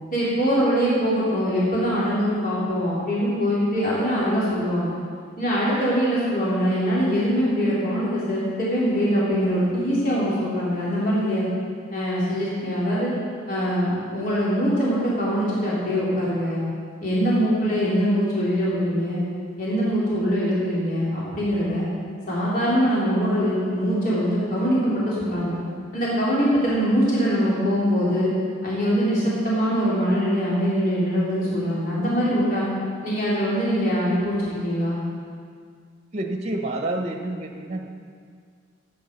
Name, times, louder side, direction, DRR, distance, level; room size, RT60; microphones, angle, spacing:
voice 1, 0.1-4.9 5.4-11.5 11.9-13.1 13.5-16.6 17.0-19.2 19.6-21.9 22.3-25.6 25.9-28.3 28.6-32.7 33.0-35.0, equal, 45° left, -8 dB, 3.4 m, -23 dB
voice 2, 36.1-37.9, right 1 dB, 35° right, 4 dB, 1.0 m, -28 dB
14.0 x 9.1 x 5.3 m, 2.1 s
head